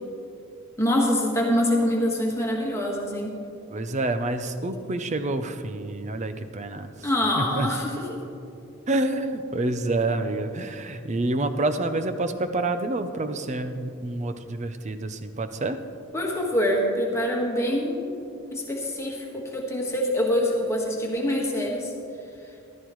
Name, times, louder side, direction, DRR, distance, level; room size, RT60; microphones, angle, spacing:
voice 1, 0.8-3.3 7.0-8.2 16.1-18.1 18.5-21.9, left 1 dB, 15° left, -2 dB, 1.5 m, -25 dB
voice 2, 3.7-6.9 7.4-7.7 8.9-15.8, right 2 dB, 35° right, 9 dB, 0.6 m, -28 dB
14.0 x 13.0 x 3.1 m, 2.6 s
head